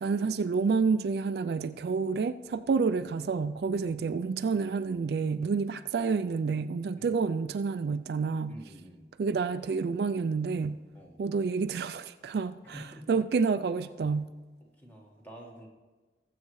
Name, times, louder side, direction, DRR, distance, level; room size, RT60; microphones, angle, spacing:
voice 1, 0.0-8.5 9.2-10.8 11.2-14.3, right 5 dB, 65° right, 11 dB, 0.3 m, -29 dB
voice 2, 8.5-9.1 10.9-11.2 12.6-13.2 14.8-15.7, equal, 10° left, -1 dB, 1.5 m, -49 dB
18.5 x 7.8 x 3.1 m, 1.3 s
head